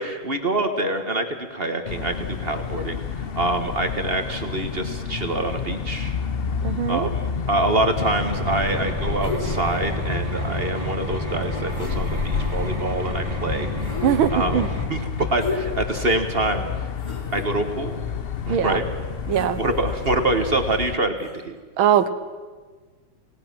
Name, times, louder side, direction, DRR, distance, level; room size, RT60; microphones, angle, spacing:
voice 1, 0.0-3.0 3.3-6.2 6.9-13.7 14.3-14.6 14.9-16.6 17.3-18.0 18.4-18.9 19.6-21.6, right 2 dB, 35° right, 7 dB, 1.3 m, -25 dB
sound 1, 1.8-21.0, left 7 dB, 65° left, 0.5 m, -30 dB
voice 2, 6.6-7.1 14.0-14.7 18.5-18.8 19.3-19.6 21.8-22.1, right 9 dB, 85° right, 12 dB, 1.8 m, -21 dB
sound 2, 8.0-14.8, right 2 dB, 15° right, 2.3 m, -31 dB
sound 3, 9.2-9.8 11.4-11.5 11.7-12.7 13.8-14.4 15.4-15.9 16.4-16.5 17.0-17.5 19.3-20.1 21.2-21.3, left 4 dB, 45° left, 3.2 m, -33 dB
27.0 x 18.0 x 6.0 m, 1.4 s
omnidirectional pair, 2.2 m